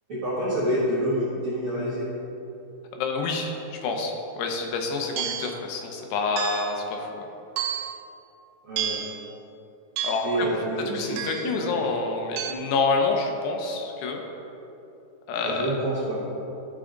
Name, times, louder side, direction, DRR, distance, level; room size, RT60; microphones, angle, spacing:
voice 1, 0.1-2.1 8.6-9.0 10.2-11.2 11.6-11.8 15.4-16.2, right 1 dB, 60° right, -10 dB, 1.4 m, -27 dB
voice 2, 2.9-7.3 10.0-10.5 10.9-14.2 15.3-15.8, left 4 dB, 80° left, 2 dB, 3.0 m, -28 dB
sound 1, 5.2-5.6 6.4-6.8 7.6-8.0 8.8-9.2 10.0-10.4 11.2-11.6 12.4-12.5, right 8 dB, 90° right, 2.1 m, -30 dB
14.5 x 4.9 x 3.8 m, 2.9 s
omnidirectional pair, 4.8 m